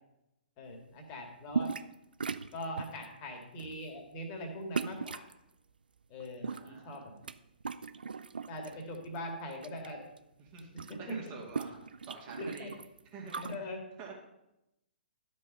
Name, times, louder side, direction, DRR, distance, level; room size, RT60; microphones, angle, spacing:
voice 1, 0.6-1.7 2.5-5.3 6.1-7.2 8.5-10.0 10.9-11.2 12.4-12.7 13.4-13.8, left 1 dB, 30° left, 3 dB, 2.2 m, -41 dB
sound 1, 1.5-1.9 2.2-3.1 3.6-3.8 4.7-5.3 6.2-7.3 7.6-8.7 9.1-9.9 10.2-10.3 10.5-13.5, right 5 dB, 70° right, 0.5 m, -38 dB
voice 2, 6.4-7.0 8.6-8.9 10.4-12.7 13.1-13.5 14.0-14.1, right 4 dB, 30° right, -1 dB, 2.3 m, -48 dB
12.0 x 5.4 x 5.5 m, 0.88 s
figure-of-eight pair, 120°, 5 cm